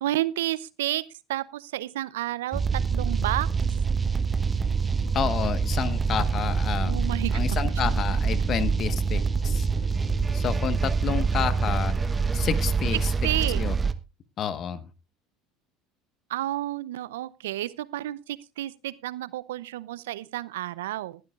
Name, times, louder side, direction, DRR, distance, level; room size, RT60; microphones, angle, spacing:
voice 1, 0.0-1.0 1.3-2.6 2.9-3.5 6.8-7.4 13.2-13.7 16.3-21.2, right 15 dB, 80° right, 19 dB, 0.6 m, -30 dB
sound 1, 2.5-13.9, right 5 dB, 25° right, 1.0 m, -25 dB
voice 2, 5.1-7.0 7.3-9.7 10.3-12.0 12.3-13.1 13.5-13.8 14.4-14.8, left 8 dB, 45° left, 14 dB, 1.3 m, -30 dB
20.0 x 11.5 x 2.4 m, 0.27 s
hypercardioid pair, 75°, 0 cm